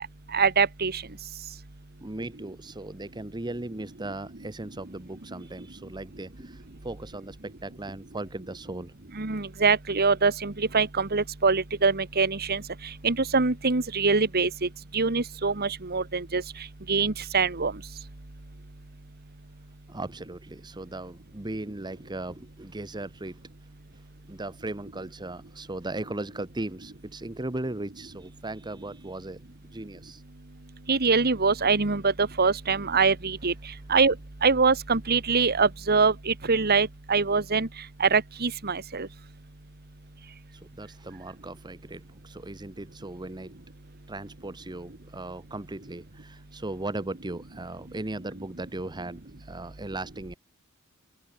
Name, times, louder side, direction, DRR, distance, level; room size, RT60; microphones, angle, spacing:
voice 1, 0.3-1.0 9.2-12.6 13.0-16.4 16.9-17.7 30.9-33.5 33.9-34.1 34.4-37.7 38.0-39.1, right 4 dB, 45° right, 1.5 m, -24 dB
voice 2, 2.0-8.9 19.9-23.4 24.3-29.4 29.7-30.2 40.5-43.6 44.1-50.4, right 2 dB, 20° right, 1.0 m, -37 dB
head